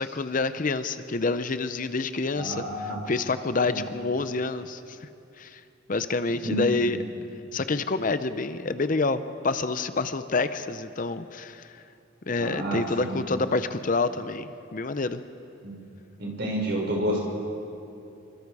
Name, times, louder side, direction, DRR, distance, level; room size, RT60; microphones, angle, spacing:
voice 1, 0.0-2.6 3.1-5.1 5.4-5.6 5.9-7.0 7.5-11.7 12.3-15.2, left 3 dB, 40° left, 11 dB, 0.6 m, -27 dB
voice 2, 2.3-3.0 3.7-3.8 6.4-6.6 12.4-13.2 15.6-15.7 16.2-17.2, equal, 55° right, -2 dB, 5.4 m, -29 dB
26.5 x 24.0 x 4.8 m, 2.7 s
head